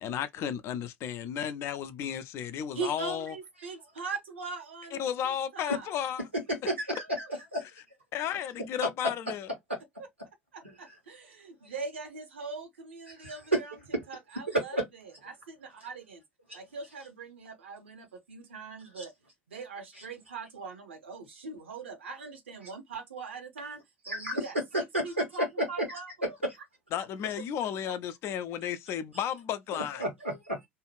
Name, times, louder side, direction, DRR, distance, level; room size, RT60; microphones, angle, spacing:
voice 1, 0.0-3.3 5.0-6.3 7.6-7.7 8.1-9.5 26.9-30.0, left 9 dB, 45° left, 0.5 m, -33 dB
voice 2, 2.7-5.9 6.9-7.3 10.5-13.8 14.1-14.8 15.2-16.2 16.5-19.1 19.5-23.8 24.1-26.1 26.9-27.0 27.8-27.9, right 4 dB, 75° right, 0.9 m, -41 dB
voice 3, 6.3-7.6 10.6-10.8 13.1-13.6 13.9-14.0 14.5-14.9 16.5-16.6 19.0-19.1 24.0-24.4 24.7-25.9 26.2-26.3 29.7-30.7, right 1 dB, 90° right, 1.2 m, -31 dB
2.8 x 2.3 x 3.0 m
figure-of-eight pair, 70°, 6 cm